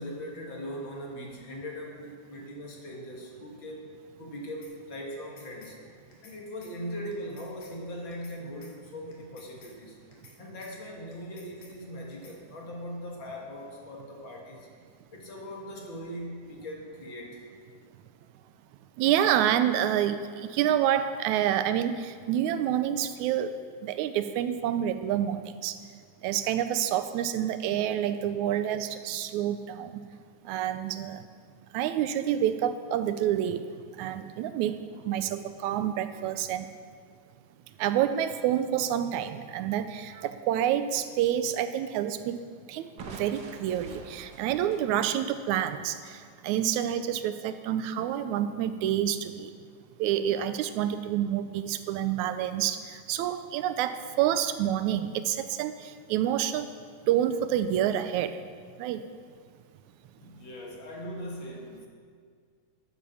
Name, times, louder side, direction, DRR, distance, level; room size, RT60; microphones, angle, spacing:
voice 1, 0.0-3.9 4.2-5.8 6.2-10.0 10.4-14.7 15.1-17.4 60.2-61.9, equal, 45° left, -2 dB, 2.4 m, -40 dB
sound 1, 4.6-4.7 5.1-5.7 6.1-6.4 6.6-6.7 7.1-7.7 8.1-8.4 8.6-8.7 9.1-9.7 10.1-10.4 10.6-10.7 11.1-11.7 12.1-12.4, left 4 dB, 80° left, 3.4 m, -54 dB
voice 2, 19.0-23.6 23.8-25.8 26.2-30.1 30.4-31.3 31.7-36.7 37.8-42.4 42.7-49.5 50.0-56.7 57.1-58.4 58.8-59.0, right 10 dB, 85° right, 11 dB, 2.0 m, -28 dB
Crushing, 43.0-46.8, right 4 dB, 65° right, 1.0 m, -46 dB
11.0 x 8.3 x 7.1 m, 2.1 s
omnidirectional pair, 3.3 m